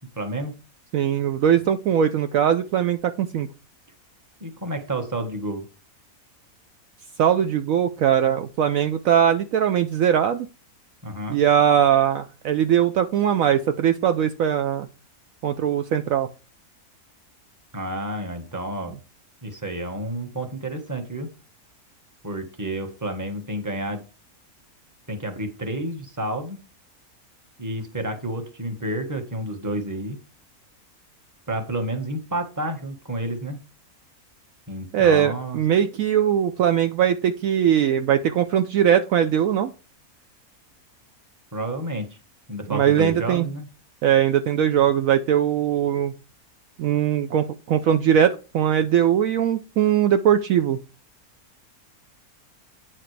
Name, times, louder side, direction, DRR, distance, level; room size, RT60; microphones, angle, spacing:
voice 1, 0.2-0.5 4.4-5.6 11.0-11.4 17.7-18.9 19.4-21.3 22.2-24.0 25.1-26.6 27.6-30.2 31.5-33.6 34.7-35.6 41.5-42.2 42.5-43.7, right 1 dB, 15° right, 5 dB, 1.2 m, -30 dB
voice 2, 0.9-3.5 7.2-10.5 11.3-14.9 15.4-16.3 34.9-39.7 42.7-43.5 44.0-46.1 46.8-50.8, right 9 dB, 70° right, 8 dB, 0.9 m, -20 dB
8.9 x 7.3 x 3.3 m, 0.33 s
omnidirectional pair, 1.6 m